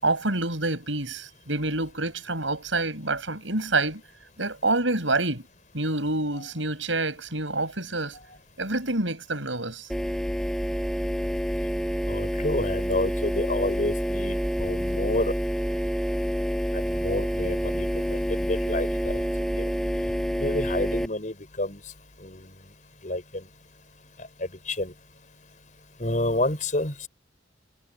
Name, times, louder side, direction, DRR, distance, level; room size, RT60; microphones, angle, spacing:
voice 1, 0.0-4.0 4.4-5.4 5.7-8.2 8.6-9.9, right 2 dB, 75° right, 7.6 m, -27 dB
sound 1, 9.9-21.1, equal, ahead, 5.9 m, -28 dB
voice 2, 12.1-15.3 16.7-19.2 19.6-19.7 20.4-21.8 22.2-22.6 23.0-23.5 24.4-24.9 26.0-27.1, left 1 dB, 40° left, 5.3 m, -29 dB
head